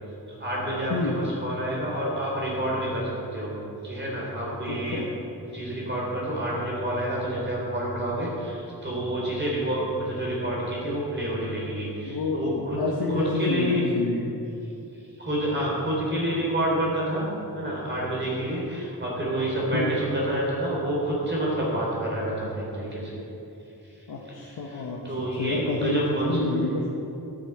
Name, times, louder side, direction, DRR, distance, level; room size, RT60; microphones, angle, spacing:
voice 1, 0.3-3.6 3.8-5.0 5.5-12.8 13.1-13.8 15.1-17.3 17.5-23.2 23.8-26.4, right 1 dB, 30° right, -5 dB, 3.7 m, -28 dB
voice 2, 4.7-5.1 12.1-12.4 12.8-14.3 19.7-19.9 24.1-25.0 25.4-26.9, left 2 dB, 75° left, -2 dB, 1.4 m, -28 dB
13.0 x 8.5 x 7.9 m, 2.9 s
wide cardioid pair, 105°, 38 cm